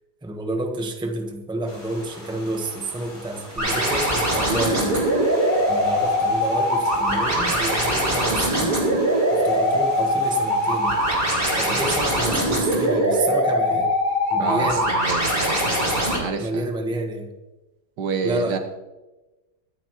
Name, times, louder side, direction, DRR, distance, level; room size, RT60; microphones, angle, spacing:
voice 1, 0.2-5.0 5.7-8.8 9.3-10.9 11.6-14.0 14.3-14.9 16.4-17.3 18.2-18.6, right 2 dB, 5° right, 4 dB, 0.9 m, -29 dB
sound 1, 1.7-12.9, equal, 40° left, 5.2 m, -41 dB
sound 2, 3.6-16.2, equal, 30° right, 3.8 m, -22 dB
voice 2, 14.4-15.7 16.2-16.6 18.0-18.6, right 5 dB, 75° right, 7 dB, 1.7 m, -28 dB
24.0 x 9.5 x 3.1 m, 1.1 s
omnidirectional pair, 1.8 m